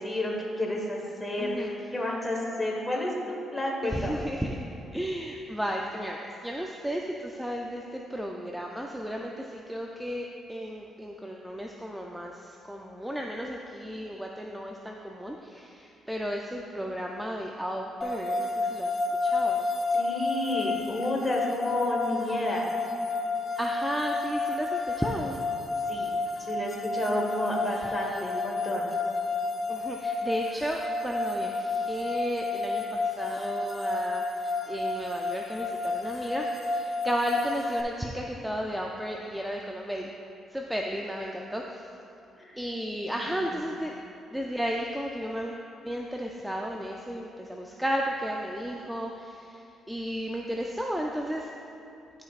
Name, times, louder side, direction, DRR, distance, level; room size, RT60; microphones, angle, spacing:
voice 1, 0.0-4.3 19.9-22.7 25.9-26.1 26.4-28.9 42.4-42.6 43.3-43.5, left 1 dB, 15° left, -2 dB, 1.3 m, -31 dB
voice 2, 1.4-1.7 3.8-4.7 4.9-6.2 6.4-19.0 19.2-19.7 23.6-25.4 27.6-28.3 29.7-40.1 40.5-41.9 42.6-44.0 44.3-51.5, equal, 5° right, 0 dB, 0.4 m, -34 dB
sound 1, 18.0-37.8, left 3 dB, 35° left, 0.7 m, -31 dB
11.5 x 5.1 x 2.4 m, 2.7 s
cardioid pair, 90°, 0 cm